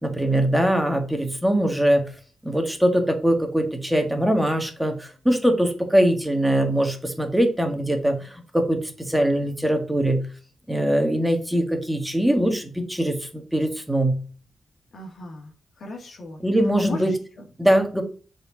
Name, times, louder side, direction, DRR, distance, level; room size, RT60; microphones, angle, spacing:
voice 1, 0.0-2.0 2.4-10.3 10.7-14.2 16.4-17.1 17.6-18.0, right 1 dB, 5° right, 4 dB, 1.7 m, -22 dB
voice 2, 14.9-16.4 16.8-17.4, left 1 dB, 60° left, 0 dB, 2.0 m, -36 dB
6.6 x 4.5 x 6.2 m, 0.39 s
cardioid pair, 90°, 0 cm